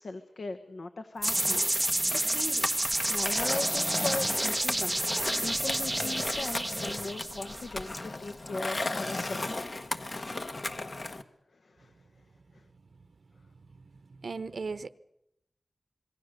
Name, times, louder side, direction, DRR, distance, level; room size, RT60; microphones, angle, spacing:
voice 1, 0.0-5.0 5.4-9.5 11.6-11.9 12.5-12.6, left 3 dB, 75° left, 1.3 m, -39 dB
Skateboard, 1.2-11.2, left 2 dB, 50° left, 1.4 m, -36 dB
sound 1, 1.2-8.5, left 1 dB, 30° left, 1.9 m, -49 dB
sound 2, 1.2-7.9, right 1 dB, 20° right, 0.9 m, -30 dB
voice 2, 14.2-14.9, right 4 dB, 70° right, 0.8 m, -36 dB
26.5 x 22.0 x 6.6 m
wide cardioid pair, 70°, 0 cm